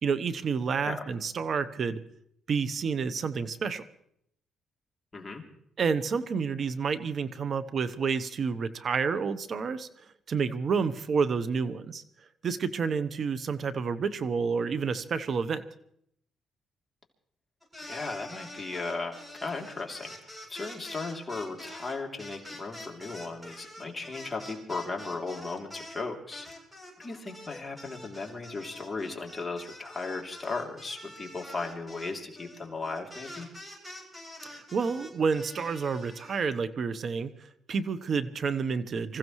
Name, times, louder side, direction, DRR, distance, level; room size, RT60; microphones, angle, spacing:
voice 1, 0.0-2.0 2.5-3.8 5.8-9.9 10.3-12.0 12.4-15.6 34.4-37.3 37.7-39.2, right 5 dB, 50° right, 12 dB, 1.0 m, -29 dB
voice 2, 5.1-5.4 17.8-20.1 20.5-26.5 27.0-33.5, left 3 dB, 20° left, 0 dB, 3.1 m, -36 dB
sound 1, 17.6-26.0 26.3-36.4, left 1 dB, 10° right, 7.9 m, -46 dB
26.0 x 15.0 x 3.2 m, 0.70 s
cardioid pair, 90°, 0 cm